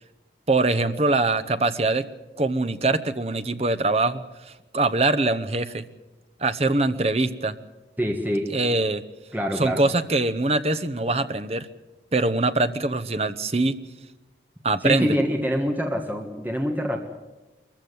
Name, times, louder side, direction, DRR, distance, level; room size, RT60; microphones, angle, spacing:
voice 1, 0.5-2.0 2.4-4.2 4.7-5.9 6.4-7.5 8.5-9.0 9.6-11.7 12.1-13.8 14.6-15.1, right 2 dB, 35° right, 11 dB, 0.9 m, -23 dB
voice 2, 8.0-8.5 9.3-9.8 14.8-17.0, equal, 10° right, 3 dB, 1.5 m, -25 dB
22.5 x 15.0 x 9.4 m, 1.1 s
head